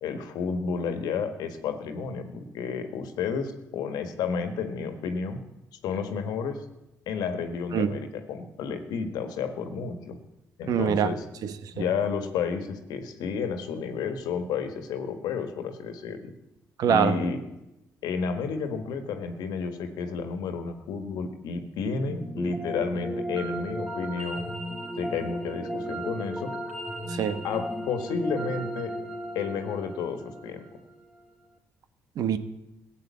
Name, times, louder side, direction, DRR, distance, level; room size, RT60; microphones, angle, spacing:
voice 1, 0.0-5.4 5.8-6.6 7.1-10.2 10.6-11.2 11.7-16.3 16.9-17.4 18.0-24.5 25.0-26.5 27.4-28.9 29.4-30.6, left 5 dB, 80° left, 7 dB, 1.6 m, -31 dB
voice 2, 10.7-11.1 11.4-11.8 16.8-17.2 27.1-27.4 32.2-32.4, right 8 dB, 70° right, 11 dB, 1.1 m, -24 dB
sound 1, 21.9-31.0, equal, 5° right, 3.1 m, -35 dB
15.0 x 8.3 x 8.5 m, 0.94 s
supercardioid pair, 65°, 7 cm